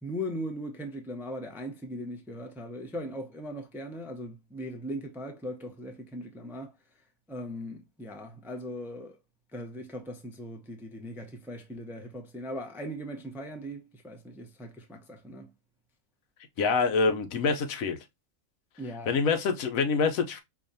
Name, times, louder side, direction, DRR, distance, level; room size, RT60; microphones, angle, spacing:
voice 1, 0.0-6.7 7.3-9.2 9.5-15.5 18.8-19.2, equal, 5° right, 0.4 m, -39 dB
voice 2, 16.6-18.0 19.1-20.4, left 4 dB, 85° left, 1.2 m, -26 dB
4.8 x 2.4 x 2.6 m
omnidirectional pair, 1.4 m